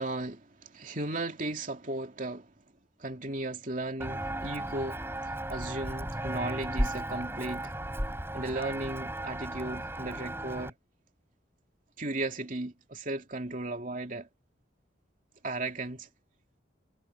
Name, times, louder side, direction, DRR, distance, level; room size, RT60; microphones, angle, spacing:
voice 1, 0.0-2.5 3.0-5.0 5.5-7.7 8.3-10.7 12.0-14.3 15.4-16.1, right 2 dB, 45° right, 2.8 m, -35 dB
Walk footsteps, 4.0-10.7, right 1 dB, 10° right, 7.2 m, -35 dB
head